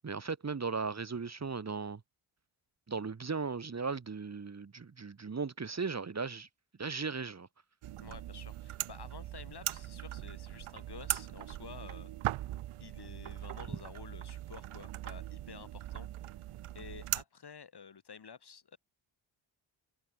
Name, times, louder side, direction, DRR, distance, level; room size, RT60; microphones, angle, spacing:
voice 1, 0.0-2.0 2.9-6.5 6.8-7.5, right 5 dB, 30° right, 1.4 m, -37 dB
sound 1, 7.8-17.2, right 14 dB, 85° right, 1.0 m, -40 dB
voice 2, 8.0-12.1 12.8-16.3 16.7-18.8, left 6 dB, 50° left, 3.1 m, -51 dB
cardioid pair, 70°, 49 cm